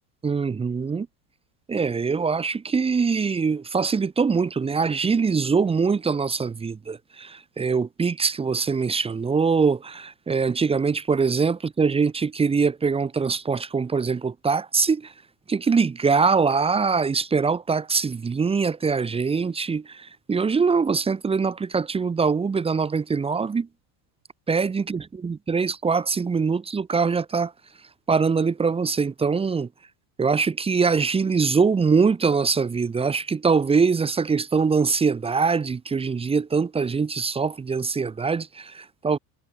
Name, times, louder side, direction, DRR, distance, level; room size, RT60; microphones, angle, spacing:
voice 1, 0.2-1.1 1.7-15.1 15.5-23.7 24.5-27.5 28.1-29.7 30.2-39.2, right 5 dB, 10° right, 2.3 m, -23 dB
supercardioid pair, 170°, 48 cm